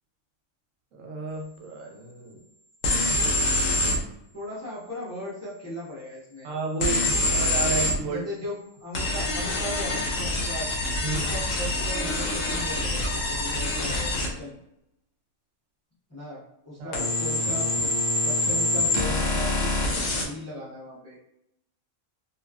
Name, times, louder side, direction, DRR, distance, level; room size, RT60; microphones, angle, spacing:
voice 1, 0.9-2.4 6.4-8.2 11.0-11.3 16.8-17.0, right 3 dB, 75° right, 1 dB, 0.9 m, -32 dB
sound 1, 2.8-4.0 6.8-8.0 8.9-14.3 16.9-20.2, left 1 dB, 70° left, 1.0 m, -25 dB
voice 2, 4.3-6.5 7.7-10.7 11.1-14.6 16.1-17.9 18.2-19.8 20.2-21.2, left 1 dB, 20° left, -7 dB, 0.4 m, -37 dB
2.8 x 2.3 x 2.3 m, 0.78 s
omnidirectional pair, 1.4 m